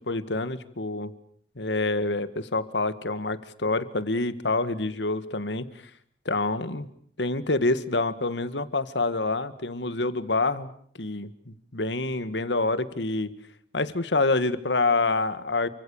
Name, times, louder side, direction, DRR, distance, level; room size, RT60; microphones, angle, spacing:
voice 1, 0.1-1.1 1.5-5.7 6.2-6.9 7.2-13.3 13.7-15.7, left 2 dB, 90° left, 13 dB, 1.8 m, -27 dB
29.5 x 25.0 x 7.2 m, 0.62 s
head